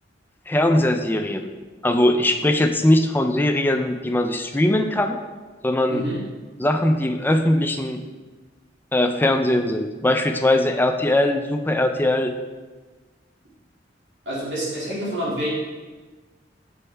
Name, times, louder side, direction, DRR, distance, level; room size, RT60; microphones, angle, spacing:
voice 1, 0.5-1.5 1.8-5.2 5.6-6.0 6.6-8.0 8.9-12.3, left 1 dB, 10° left, 5 dB, 0.4 m, -20 dB
voice 2, 14.3-15.5, equal, 70° right, -8 dB, 2.1 m, -27 dB
6.4 x 5.3 x 3.3 m, 1.3 s
head